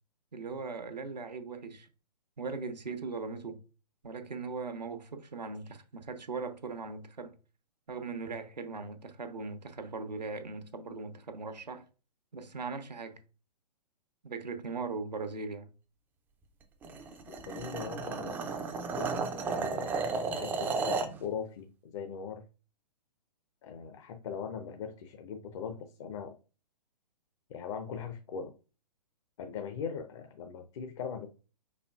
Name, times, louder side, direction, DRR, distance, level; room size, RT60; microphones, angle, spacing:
voice 1, 0.3-1.9 2.4-3.6 4.0-7.3 7.9-11.9 12.3-13.2 14.2-15.7, right 4 dB, 85° right, 0.8 m, -39 dB
sound 1, 16.8-21.2, right 4 dB, 10° right, 0.3 m, -33 dB
voice 2, 17.3-18.4 19.0-22.4 23.6-26.4 27.5-28.5 29.4-31.3, left 6 dB, 45° left, 0.6 m, -40 dB
5.1 x 4.3 x 2.3 m
figure-of-eight pair, 125°, 21 cm